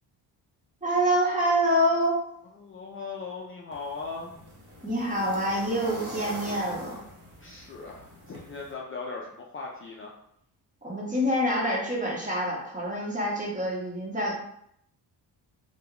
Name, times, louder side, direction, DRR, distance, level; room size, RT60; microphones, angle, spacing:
voice 1, 0.8-2.2 4.8-7.0 10.8-14.4, equal, 20° right, -4 dB, 1.5 m, -26 dB
voice 2, 2.5-4.4 7.4-10.1, left 4 dB, 30° left, -2 dB, 0.5 m, -38 dB
sound 1, 3.7-8.7, equal, 35° right, 1.2 m, -43 dB
3.4 x 2.4 x 3.0 m, 0.71 s
cardioid pair, 70°, 43 cm